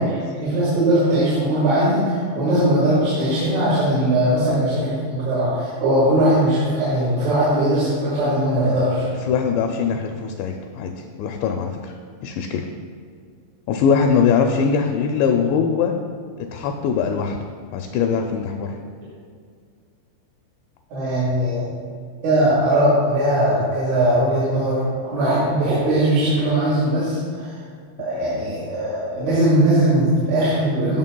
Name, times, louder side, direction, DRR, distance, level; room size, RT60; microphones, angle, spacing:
voice 1, 0.0-9.1 20.9-21.7 22.2-27.5 28.0-31.0, right 1 dB, 85° right, -10 dB, 4.6 m, -20 dB
voice 2, 9.2-11.9 12.2-12.7 13.7-16.0 16.4-17.4 17.7-18.8, left 6 dB, 85° left, 3 dB, 2.5 m, -21 dB
15.0 x 6.3 x 2.2 m, 2.1 s
omnidirectional pair, 5.5 m